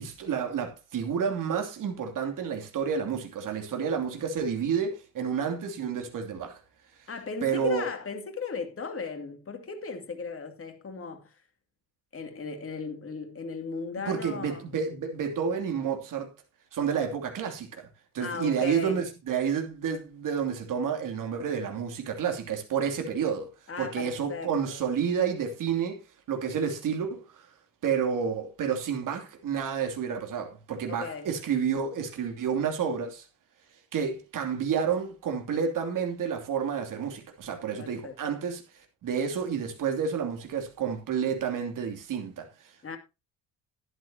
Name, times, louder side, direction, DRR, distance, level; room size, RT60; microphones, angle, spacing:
voice 1, 0.0-6.6 7.4-7.9 14.1-16.3 16.7-17.9 18.1-23.5 23.8-27.5 27.8-33.3 33.9-43.0, right 7 dB, 55° right, 2.9 m, -30 dB
voice 2, 7.1-11.3 12.1-14.6 18.2-19.0 23.7-24.8 30.9-31.3 37.8-38.2 42.8-43.0, left 5 dB, 35° left, 2.6 m, -36 dB
12.0 x 11.0 x 2.9 m
hypercardioid pair, 55°, 38 cm